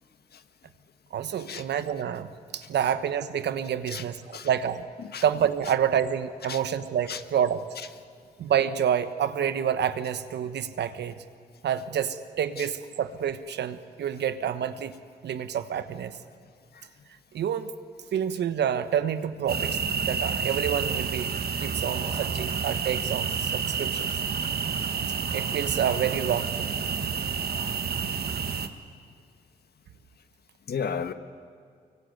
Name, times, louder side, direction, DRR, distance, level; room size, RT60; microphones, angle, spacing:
voice 1, 1.1-4.9 5.2-7.7 8.4-11.2 11.6-16.2 17.3-17.8 18.1-24.1 25.3-26.8, right 9 dB, 85° right, 11 dB, 1.2 m, -28 dB
sound 1, 19.5-28.7, right 6 dB, 65° right, 1.7 m, -29 dB
voice 2, 30.7-31.1, left 6 dB, 70° left, 9 dB, 1.6 m, -33 dB
24.5 x 23.0 x 9.3 m, 2.2 s
cardioid pair, 50°, 17 cm